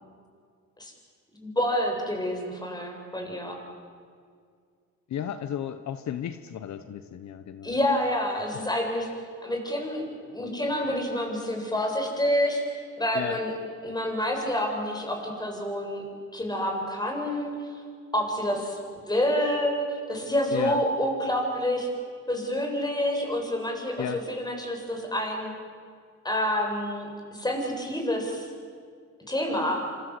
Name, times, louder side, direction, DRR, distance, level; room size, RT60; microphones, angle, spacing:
voice 1, 1.3-3.6 7.6-9.1 9.4-13.5 13.8-16.0 16.3-17.5 18.1-21.9 22.3-25.5 26.2-28.5 29.3-29.8, left 1 dB, 15° left, 2 dB, 7.8 m, -28 dB
voice 2, 5.1-7.7 13.1-13.4 20.5-20.8 24.0-24.2, left 9 dB, 65° left, 10 dB, 1.2 m, -34 dB
27.5 x 27.0 x 8.1 m, 2.1 s
cardioid pair, 90°, 30 cm